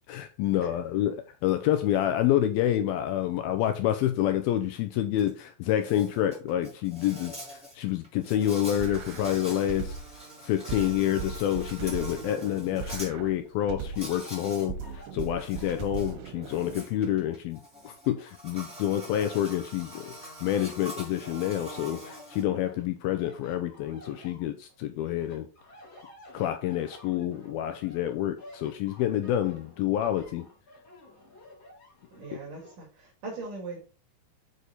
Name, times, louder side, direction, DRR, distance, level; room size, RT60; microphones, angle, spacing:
voice 1, 0.1-10.0 10.4-25.5 26.3-30.5, left 12 dB, 85° left, 2.3 m, -28 dB
Insect, 5.2-5.3 5.6-13.1 13.9-14.7 15.0-22.4, right 1 dB, ahead, 3.6 m, -44 dB
sound 1, 8.8-10.2 10.7-14.2 14.7-16.8, right 6 dB, 85° right, 3.0 m, -39 dB
sound 2, 13.8-17.3 17.7-19.5 19.9-20.8 21.2-24.8 25.2-32.8, left 2 dB, 30° left, 3.6 m, -53 dB
voice 2, 32.1-33.8, right 3 dB, 55° right, 3.7 m, -40 dB
6.8 x 6.3 x 4.1 m
omnidirectional pair, 4.8 m